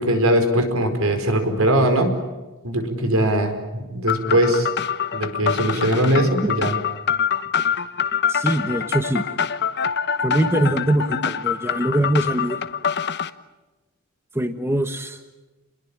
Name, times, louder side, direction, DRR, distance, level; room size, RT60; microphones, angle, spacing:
voice 1, 0.0-2.1 2.6-4.7 5.1-6.8, right 1 dB, 65° right, 7 dB, 4.9 m, -20 dB
sound 1, 4.1-13.3, left 7 dB, 50° left, 1.1 m, -25 dB
voice 2, 8.3-9.2 10.2-12.6 14.3-15.3, right 1 dB, 10° right, 7 dB, 1.3 m, -23 dB
30.0 x 21.5 x 9.0 m, 1.1 s
head